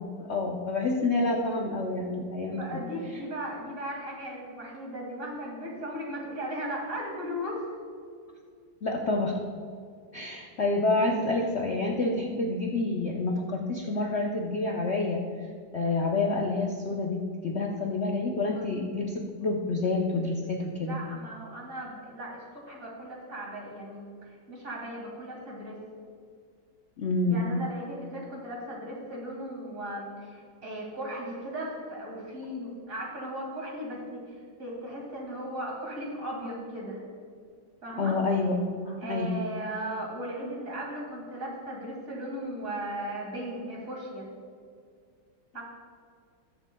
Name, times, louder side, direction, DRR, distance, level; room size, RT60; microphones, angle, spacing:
voice 1, 0.0-2.9 8.8-9.4 10.1-15.2 15.7-21.0 27.0-27.5 38.0-39.4, left 3 dB, 50° left, 0 dB, 0.8 m, -28 dB
voice 2, 2.5-7.6 18.4-18.9 20.8-25.8 27.3-37.0 37.8-38.1 39.0-44.3 45.5-45.6, right 1 dB, 45° right, -3 dB, 2.7 m, -37 dB
21.0 x 7.1 x 2.3 m, 2.2 s
omnidirectional pair, 2.0 m